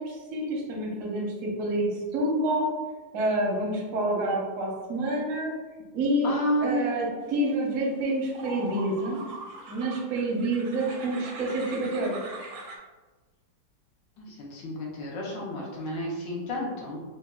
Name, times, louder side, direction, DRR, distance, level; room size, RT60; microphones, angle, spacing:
voice 1, 0.0-2.7 3.1-5.5 5.9-6.3 6.6-9.2 9.7-12.2, right 1 dB, 65° right, -2 dB, 0.8 m, -28 dB
voice 2, 6.2-6.9 14.2-17.0, equal, 75° left, -3 dB, 1.2 m, -31 dB
sound 1, 7.7-7.8 8.3-12.8, right 2 dB, 85° right, 1.4 m, -41 dB
3.4 x 2.1 x 2.2 m, 1.3 s
omnidirectional pair, 2.1 m